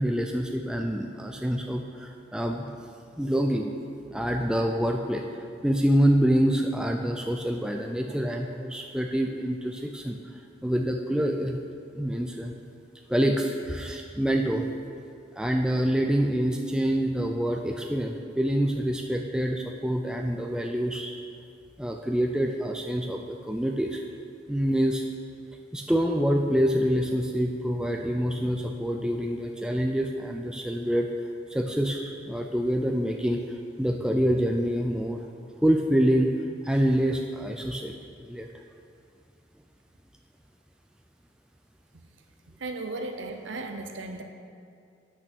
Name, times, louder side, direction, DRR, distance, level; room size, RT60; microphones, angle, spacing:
voice 1, 0.0-2.7 3.2-3.7 4.1-5.2 5.6-10.2 10.6-11.6 11.9-12.5 13.1-14.7 15.4-21.1 21.8-24.0 24.5-25.0 25.7-31.1 31.5-35.2 35.6-36.3 36.6-38.5, equal, 5° right, 2 dB, 0.3 m, -26 dB
voice 2, 42.6-44.2, right 2 dB, 80° right, 5 dB, 0.7 m, -35 dB
8.3 x 6.1 x 6.1 m, 2.4 s
head